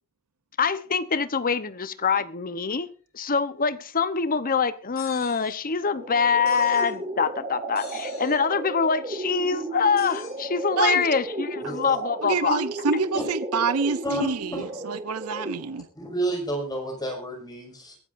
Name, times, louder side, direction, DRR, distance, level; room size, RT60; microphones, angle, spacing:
voice 1, 0.6-2.9 3.1-12.6, left 5 dB, 40° left, 0.9 m, -24 dB
sound 1, 5.0-5.6 6.5-6.9 7.8-8.4 10.0-10.3, left 5 dB, 65° left, 6.9 m, -44 dB
sound 2, 5.8-15.8, right 1 dB, 25° right, 6.9 m, -34 dB
voice 2, 10.8-11.1 12.2-15.9, right 4 dB, 75° right, 0.7 m, -27 dB
voice 3, 11.6-12.0 13.1-13.2 14.0-14.8 16.0-18.0, right 1 dB, 20° left, 5.9 m, -30 dB
23.0 x 12.5 x 2.6 m
head